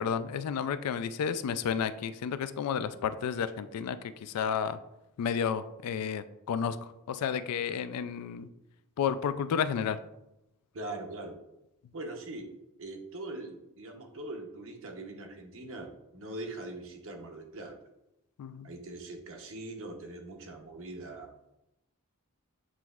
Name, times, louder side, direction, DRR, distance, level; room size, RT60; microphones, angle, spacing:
voice 1, 0.0-4.8 5.2-8.5 9.0-10.0 18.4-18.7, left 7 dB, 85° left, 13 dB, 0.3 m, -31 dB
voice 2, 10.7-11.4 11.9-12.5 12.8-17.8 18.6-21.3, right 2 dB, 60° right, 3 dB, 0.8 m, -42 dB
7.4 x 3.0 x 2.3 m, 0.89 s
head